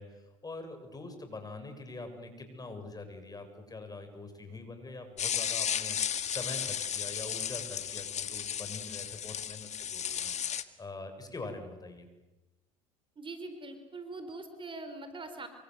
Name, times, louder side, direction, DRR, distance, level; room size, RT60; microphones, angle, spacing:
voice 1, 0.0-10.4 10.8-12.1, left 3 dB, 20° left, 7 dB, 7.2 m, -44 dB
sound 1, 5.2-10.6, left 8 dB, 40° left, 1.9 m, -34 dB
voice 2, 13.2-15.5, right 2 dB, 30° right, 9 dB, 4.3 m, -42 dB
27.5 x 25.5 x 8.1 m, 1.1 s
hypercardioid pair, 75°, 17 cm